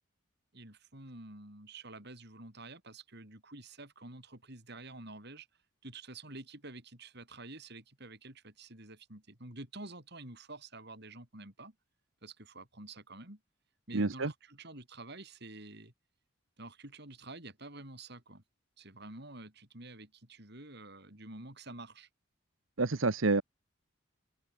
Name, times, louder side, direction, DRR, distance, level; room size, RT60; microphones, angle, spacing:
voice 1, 0.5-5.5 5.8-11.7 12.2-13.4 13.9-15.9 16.6-18.4 18.8-22.1, right 2 dB, 55° right, 6.5 m, -49 dB
voice 2, 13.9-14.3 22.8-23.4, right 3 dB, 75° right, 1.1 m, -28 dB
head